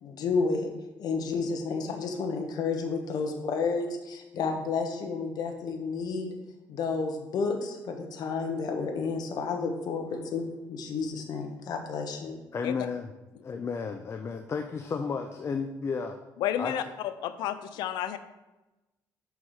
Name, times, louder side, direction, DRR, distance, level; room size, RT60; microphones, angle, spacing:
voice 1, 0.0-0.7 1.0-6.4 6.7-10.0 10.3-12.3, left 4 dB, 65° left, 4 dB, 1.2 m, -31 dB
voice 2, 12.5-13.1 13.5-16.2 16.6-16.7, left 5 dB, 40° left, 5 dB, 0.6 m, -32 dB
voice 3, 16.4-18.2, left 10 dB, 85° left, 12 dB, 0.5 m, -31 dB
5.5 x 4.7 x 6.4 m, 1.1 s
cardioid pair, 90°, 7 cm